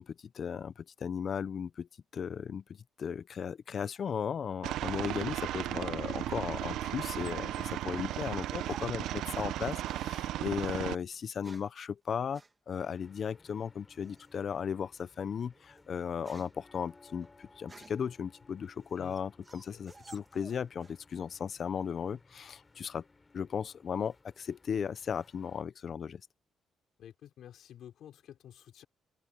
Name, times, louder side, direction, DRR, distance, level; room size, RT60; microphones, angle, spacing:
voice 1, 0.0-2.6 3.0-12.4 12.7-23.0 23.3-26.2, left 7 dB, 50° left, 0.8 m, -36 dB
Aircraft, 4.6-10.9, right 13 dB, 85° right, 0.9 m, -35 dB
sound 1, 6.3-9.5 9.8-10.1 11.1-11.8 12.3-12.5 14.0-14.4 14.9-15.1 15.5-18.1 18.7-21.0 21.3-21.9, right 3 dB, 25° right, 2.5 m, -55 dB
sound 2, 12.8-25.6, left 3 dB, 25° left, 3.5 m, -62 dB
voice 2, 27.0-28.9, left 10 dB, 75° left, 5.2 m, -51 dB
cardioid pair, 90°, 0 cm